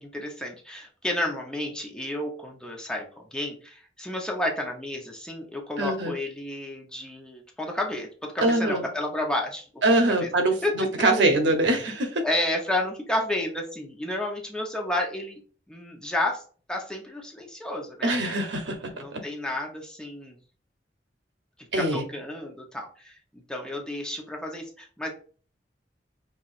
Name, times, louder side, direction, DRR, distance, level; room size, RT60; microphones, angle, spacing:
voice 1, 0.0-9.7 10.2-10.3 10.6-10.7 11.0-11.3 12.2-15.4 15.7-16.4 16.7-18.1 19.0-20.4 21.8-25.1, left 1 dB, 5° left, 0 dB, 0.8 m, -31 dB
voice 2, 5.8-6.1 8.4-8.8 9.8-12.2 18.0-19.2 21.7-22.1, right 2 dB, 85° right, 4 dB, 0.9 m, -23 dB
5.8 x 2.5 x 2.5 m, 0.40 s
head